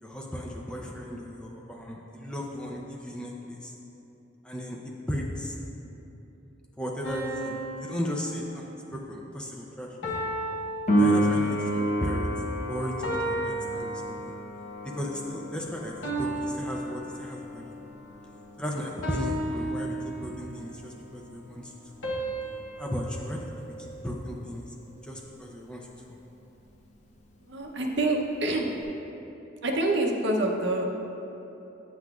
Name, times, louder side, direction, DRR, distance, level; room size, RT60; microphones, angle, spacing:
voice 1, 0.0-3.7 4.4-4.8 5.1-5.6 6.8-8.7 8.9-10.2 11.0-12.3 12.7-14.3 14.9-17.8 18.6-19.9 20.2-21.7 22.8-23.7 24.0-24.6 25.0-25.9, equal, 5° left, -2 dB, 0.5 m, -35 dB
sound 1, 7.0-9.0 10.0-11.7 13.0-14.6 16.0-17.7 19.0-20.6 22.0-24.4, right 1 dB, 80° left, 1.1 m, -35 dB
Piano, 10.9-21.3 28.8-28.9, right 1 dB, 35° left, 0.8 m, -31 dB
voice 2, 27.5-28.7 29.6-31.0, right 2 dB, 65° right, 1 dB, 0.7 m, -26 dB
8.9 x 7.8 x 2.4 m, 3.0 s
head